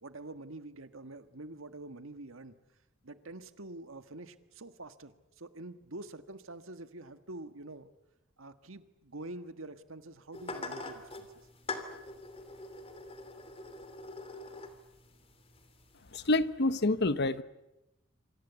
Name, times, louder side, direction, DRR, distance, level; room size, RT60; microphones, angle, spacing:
voice 1, 0.0-2.5 3.0-7.9 8.4-11.3, right 2 dB, 80° right, 10 dB, 1.7 m, -46 dB
sound 1, 10.3-16.4, left 3 dB, 30° left, 3.1 m, -44 dB
voice 2, 16.1-17.4, left 2 dB, 55° left, 14 dB, 1.1 m, -27 dB
27.0 x 25.5 x 8.2 m, 0.94 s
head